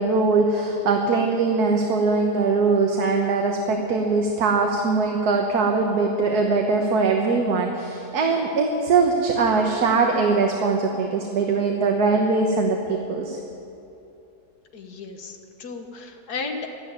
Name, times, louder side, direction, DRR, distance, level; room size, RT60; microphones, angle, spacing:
voice 1, 0.0-13.4, right 4 dB, 85° right, 2 dB, 1.7 m, -21 dB
voice 2, 14.7-16.7, left 4 dB, 90° left, 4 dB, 1.9 m, -34 dB
13.0 x 11.5 x 9.6 m, 2.8 s
omnidirectional pair, 1.6 m